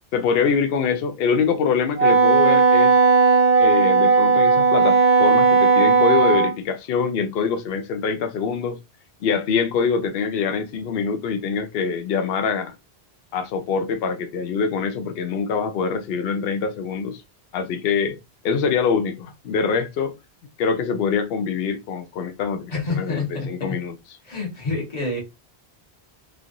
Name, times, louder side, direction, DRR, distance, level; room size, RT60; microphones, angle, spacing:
voice 1, 0.1-3.0 3.6-8.8 9.2-12.7 13.3-17.2 17.5-18.2 18.4-20.2 20.6-23.9, left 6 dB, 65° left, 0.7 m, -24 dB
Wind instrument woodwind instrument, 2.0-6.5, right 4 dB, 45° right, 0.6 m, -16 dB
voice 2, 22.7-23.8 24.2-25.2, left 3 dB, 40° left, 1.2 m, -27 dB
3.2 x 2.4 x 2.6 m
omnidirectional pair, 1.1 m